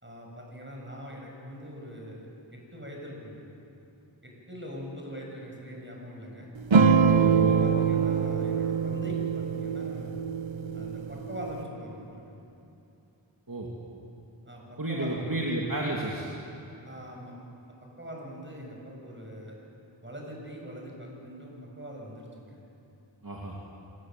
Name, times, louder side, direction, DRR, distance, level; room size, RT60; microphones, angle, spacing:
voice 1, 0.0-3.4 4.2-6.5 7.4-10.2 10.7-12.3 14.5-15.4 16.8-17.3 17.8-19.6 20.0-22.6, equal, 25° right, -1 dB, 6.4 m, -42 dB
sound 1, 6.7-11.6, right 6 dB, 75° right, 1.0 m, -24 dB
voice 2, 7.2-7.6 13.5-13.7 14.8-16.3 23.2-23.5, right 1 dB, 45° right, -3 dB, 2.6 m, -32 dB
26.5 x 17.0 x 7.7 m, 2.8 s
wide cardioid pair, 40°, 46 cm